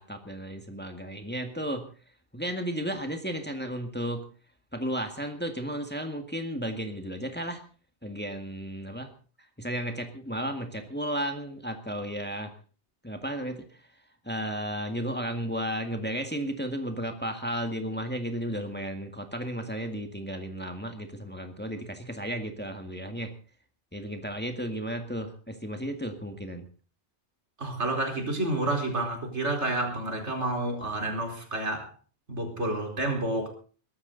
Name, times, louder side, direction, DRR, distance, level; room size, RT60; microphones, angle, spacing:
voice 1, 0.0-1.9 2.3-4.3 4.7-7.6 8.0-9.1 9.6-12.5 13.0-13.6 14.2-23.3 23.9-26.7, equal, 10° left, 5 dB, 1.9 m, -33 dB
voice 2, 27.6-31.9 32.3-33.5, right 2 dB, 80° right, 2 dB, 4.8 m, -29 dB
22.5 x 12.5 x 4.0 m, 0.39 s
omnidirectional pair, 1.2 m